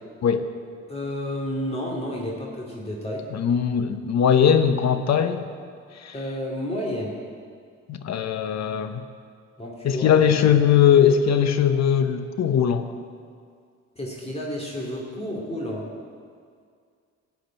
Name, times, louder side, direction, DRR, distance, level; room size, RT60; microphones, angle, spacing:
voice 1, 0.9-3.3 6.1-7.2 9.6-10.2 14.0-15.9, equal, 20° left, -3 dB, 2.3 m, -31 dB
voice 2, 3.3-5.4 5.9-6.1 7.9-9.0 9.8-12.9, left 8 dB, 60° left, 9 dB, 0.9 m, -20 dB
14.5 x 5.1 x 9.1 m, 2.1 s
cardioid pair, 90°, 30 cm